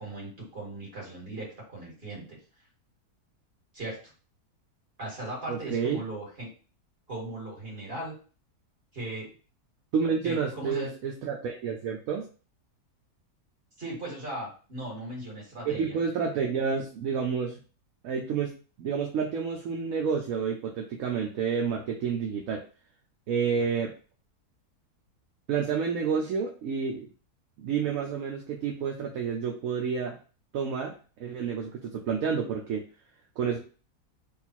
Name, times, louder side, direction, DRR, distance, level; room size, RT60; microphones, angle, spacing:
voice 1, 0.0-2.4 3.7-4.1 5.0-6.5 7.1-8.1 8.9-9.3 10.2-10.9 13.8-16.0 23.6-23.7, right 1 dB, 40° right, -4 dB, 2.1 m, -38 dB
voice 2, 5.5-6.0 9.9-12.3 15.7-17.6 18.0-18.5 18.8-22.6 23.3-23.9 25.5-27.1 27.6-30.2 30.5-30.9 31.2-32.8 33.4-33.6, right 6 dB, 65° right, 1 dB, 1.0 m, -29 dB
3.6 x 2.4 x 4.4 m, 0.38 s
omnidirectional pair, 1.7 m